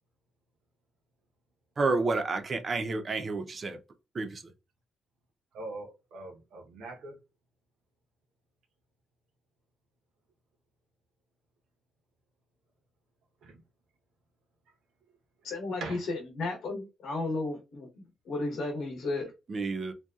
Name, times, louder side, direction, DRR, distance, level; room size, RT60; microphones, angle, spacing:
voice 1, 1.8-3.8 4.1-4.4 19.5-19.9, right 3 dB, 35° right, 0.5 m, -30 dB
voice 2, 5.5-7.2 13.4-13.6 15.8-16.1, right 2 dB, 85° right, 0.8 m, -42 dB
voice 3, 15.4-19.3, left 2 dB, 85° left, 0.9 m, -34 dB
2.7 x 2.2 x 2.3 m
cardioid pair, 130°, 0 cm